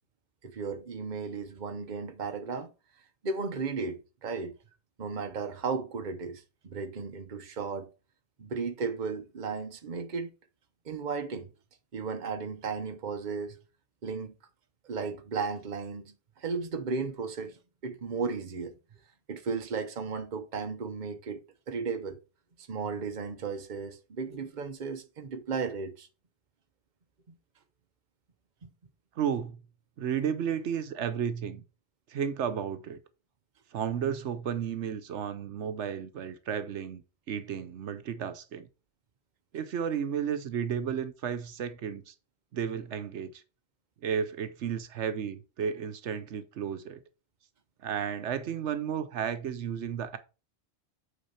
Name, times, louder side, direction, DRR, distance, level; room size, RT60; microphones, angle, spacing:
voice 1, 0.4-2.7 3.2-4.5 5.0-7.9 8.4-10.3 10.8-11.5 11.9-13.6 14.0-14.3 14.8-18.8 19.3-22.2 22.6-26.1 28.6-28.7, right 5 dB, 45° right, 1.0 m, -35 dB
voice 2, 29.2-29.6 30.0-31.6 32.1-33.0 33.7-37.0 37.3-38.7 39.5-42.1 42.5-43.4 44.0-47.0 47.8-50.2, right 8 dB, 80° right, 1.1 m, -33 dB
8.4 x 4.0 x 5.7 m
omnidirectional pair, 1.2 m